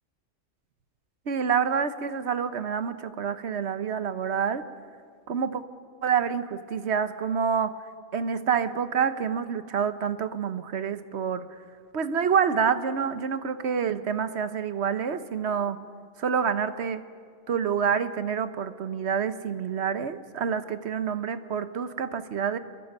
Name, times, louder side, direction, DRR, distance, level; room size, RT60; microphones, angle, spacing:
voice 1, 1.3-4.6 5.3-5.6 6.0-7.8 8.1-11.5 11.9-15.8 16.2-17.0 17.5-22.6, right 7 dB, 60° right, 12 dB, 1.2 m, -27 dB
29.0 x 22.5 x 5.5 m, 2.1 s
omnidirectional pair, 1.3 m